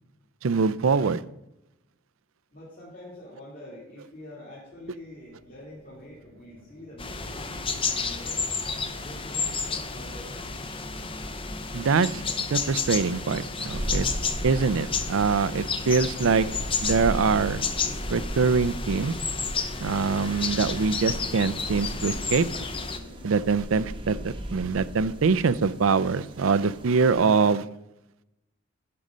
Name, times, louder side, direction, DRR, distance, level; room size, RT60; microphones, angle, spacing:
voice 1, 0.4-1.2 11.7-12.2 12.5-14.1 14.4-16.5 16.8-17.6 18.1-19.1 19.8-22.5 23.2-27.7, right 5 dB, 70° right, 15 dB, 0.5 m, -24 dB
voice 2, 2.5-8.4 9.0-10.4, left 1 dB, 40° left, -6 dB, 2.7 m, -45 dB
sound 1, 4.6-23.6, left 1 dB, 90° left, 2.8 m, -52 dB
sound 2, 7.0-23.0, left 5 dB, 25° left, 0.6 m, -31 dB
sound 3, 13.7-27.1, equal, 25° right, 0.9 m, -37 dB
11.5 x 5.4 x 5.1 m, 0.89 s
head